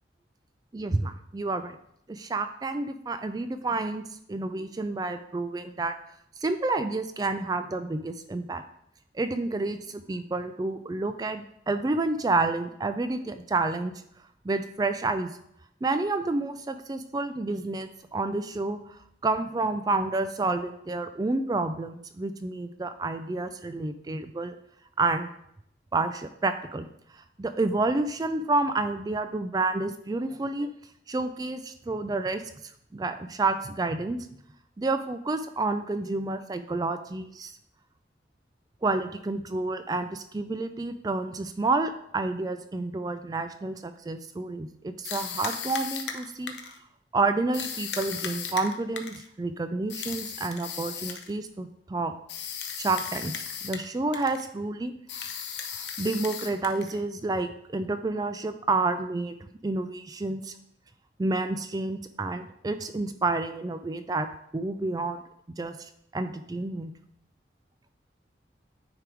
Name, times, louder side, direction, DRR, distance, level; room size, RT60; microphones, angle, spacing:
voice 1, 0.7-1.7 2.1-4.0 4.3-5.9 6.4-8.6 9.1-13.9 14.4-15.3 15.8-24.6 25.0-25.3 25.9-26.9 27.1-30.7 31.1-32.4 32.9-34.2 34.8-37.6 38.8-46.8 47.1-52.1 52.8-53.3 53.6-55.3 55.7-60.5 61.2-64.3 64.5-65.2 65.6-66.9, right 3 dB, 20° right, 9 dB, 0.3 m, -29 dB
sound 1, 45.0-46.8 47.5-49.3 49.9-51.3 52.3-53.9 54.1-54.5 55.1-57.0, left 7 dB, 85° left, 0.8 m, -36 dB
9.5 x 3.5 x 4.5 m, 0.73 s
head